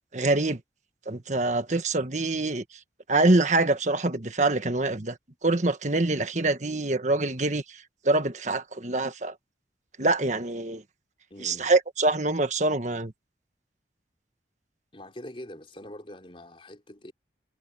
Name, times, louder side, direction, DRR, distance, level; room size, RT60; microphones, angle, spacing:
voice 1, 0.1-0.6 1.0-2.6 3.1-5.2 5.4-9.3 10.0-10.8 11.4-13.1, right 2 dB, 40° right, 1.6 m, -25 dB
voice 2, 11.3-11.7 14.9-17.1, left 1 dB, 30° left, 3.8 m, -44 dB
head